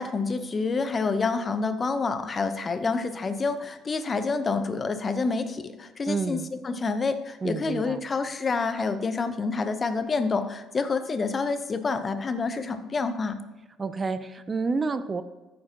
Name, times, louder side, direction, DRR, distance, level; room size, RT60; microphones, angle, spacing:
voice 1, 0.0-6.4 6.6-13.4, left 4 dB, 30° left, 10 dB, 0.8 m, -28 dB
voice 2, 6.1-6.5 7.4-8.0 13.8-15.2, right 4 dB, 30° right, 13 dB, 0.5 m, -29 dB
14.0 x 7.5 x 2.9 m, 1.1 s
hypercardioid pair, 55°, 0 cm